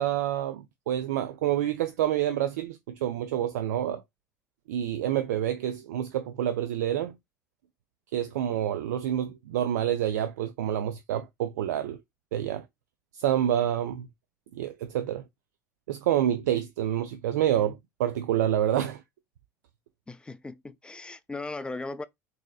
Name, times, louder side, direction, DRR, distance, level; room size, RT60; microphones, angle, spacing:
voice 1, 0.0-4.0 4.7-7.1 8.1-12.0 12.3-12.6 13.1-14.1 14.6-15.2 15.9-19.0, right 11 dB, 70° right, 0.4 m, -28 dB
voice 2, 20.1-22.0, left 3 dB, 10° left, 0.4 m, -37 dB
3.8 x 2.7 x 2.3 m
figure-of-eight pair, 70°, 9 cm